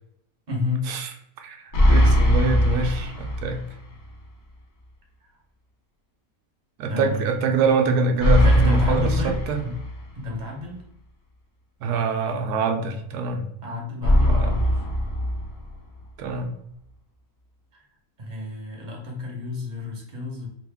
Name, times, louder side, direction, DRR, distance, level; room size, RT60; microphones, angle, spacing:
voice 1, 0.5-0.9 6.9-7.3 8.3-9.7 10.1-10.8 13.6-14.9 17.7-17.8 18.2-20.5, left 3 dB, 35° right, -2 dB, 0.8 m, -30 dB
voice 2, 1.4-3.6 6.8-9.6 11.8-13.4 14.2-14.5 16.2-16.5, right 3 dB, 75° right, 4 dB, 1.0 m, -24 dB
sound 1, 1.7-3.8 4.1-4.2 8.2-10.2 14.0-16.0, equal, 60° left, 0.5 m, -20 dB
3.0 x 2.5 x 3.4 m, 0.74 s
omnidirectional pair, 1.7 m